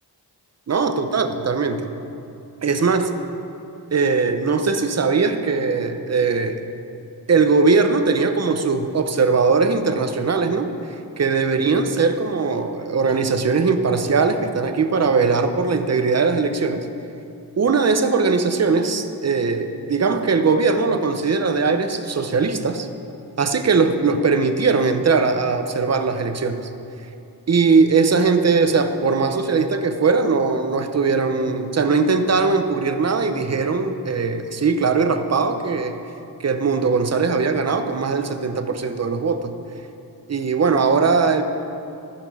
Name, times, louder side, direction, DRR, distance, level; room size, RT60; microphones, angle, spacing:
voice 1, 0.7-1.9 2.6-3.1 3.9-6.6 7.3-16.9 17.6-22.9 23.4-26.6 27.5-36.0 36.4-39.5 40.3-41.4, right 4 dB, 40° right, 7 dB, 0.7 m, -20 dB
15.0 x 5.9 x 4.8 m, 2.8 s
wide cardioid pair, 100°, 41 cm